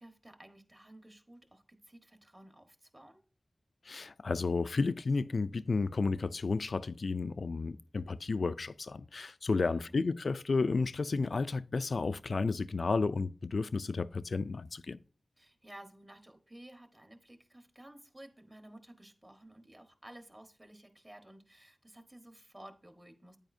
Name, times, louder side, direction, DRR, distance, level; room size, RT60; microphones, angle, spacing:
voice 1, 0.0-3.2 9.5-10.0 15.4-23.4, right 1 dB, 25° right, 1.3 m, -54 dB
voice 2, 3.9-15.0, left 4 dB, 75° left, 0.3 m, -32 dB
9.1 x 9.0 x 2.7 m
wide cardioid pair, 65°, 0 cm